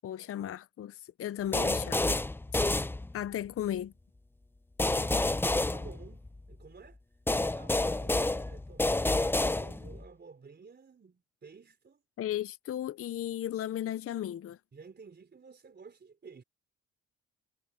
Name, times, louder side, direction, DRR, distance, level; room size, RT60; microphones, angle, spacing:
voice 1, 0.0-2.2 3.1-3.9 12.2-14.6, left 11 dB, 50° left, 0.6 m, -35 dB
sound 1, 1.5-3.5 4.8-6.5 7.3-10.0, left 2 dB, 5° left, 0.5 m, -29 dB
voice 2, 5.7-7.0 7.4-12.0 14.7-16.4, right 5 dB, 35° right, 4.1 m, -52 dB
cardioid pair, 90°, 30 cm